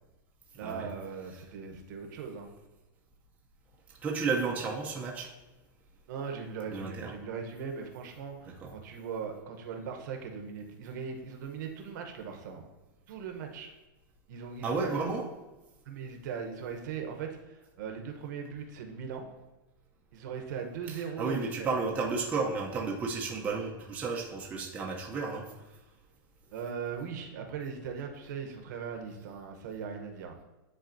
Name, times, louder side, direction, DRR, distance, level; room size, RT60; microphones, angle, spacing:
voice 1, 0.6-2.5 6.1-12.6 13.1-13.7 14.3-14.9 15.8-19.3 20.1-21.7 26.5-30.4, right 6 dB, 55° right, 3 dB, 0.9 m, -39 dB
voice 2, 4.0-5.3 6.7-7.1 8.6-8.7 14.6-15.2 20.9-25.5, right 4 dB, 15° right, -2 dB, 0.6 m, -32 dB
10.5 x 4.0 x 2.6 m, 1.1 s
supercardioid pair, 155°, 12 cm